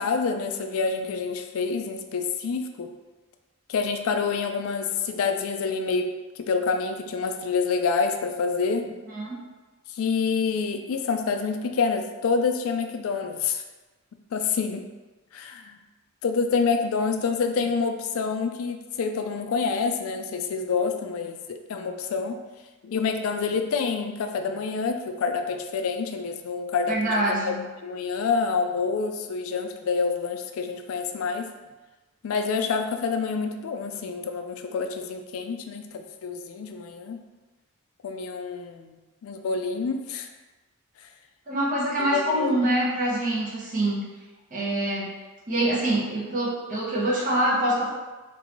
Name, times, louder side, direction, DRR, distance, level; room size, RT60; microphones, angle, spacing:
voice 1, 0.0-2.9 3.7-8.9 9.9-13.6 14.3-14.8 15.3-15.8 16.2-22.4 22.8-27.1 27.5-27.6 27.8-31.5 32.2-37.2 38.0-40.3 42.1-42.6, left 5 dB, 75° left, 6 dB, 0.3 m, -27 dB
voice 2, 26.9-27.6 41.5-44.1 44.5-45.1 45.5-47.9, right 1 dB, 40° right, -6 dB, 1.0 m, -25 dB
3.9 x 2.6 x 2.9 m, 1.2 s
head